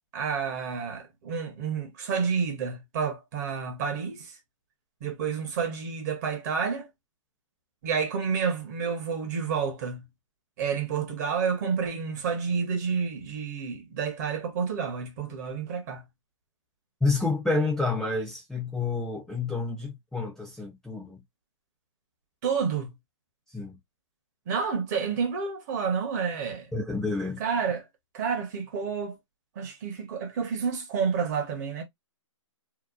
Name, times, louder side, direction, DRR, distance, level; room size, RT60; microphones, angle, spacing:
voice 1, 0.1-4.3 5.0-6.9 7.8-10.0 10.6-16.0 22.4-22.9 24.5-26.7 27.4-27.8 28.1-29.2 29.6-31.8, right 6 dB, 35° right, 0.9 m, -29 dB
voice 2, 17.0-21.2 23.5-23.8 26.7-27.4, left 3 dB, ahead, 0.7 m, -29 dB
2.9 x 2.0 x 2.3 m
hypercardioid pair, 150°, 16 cm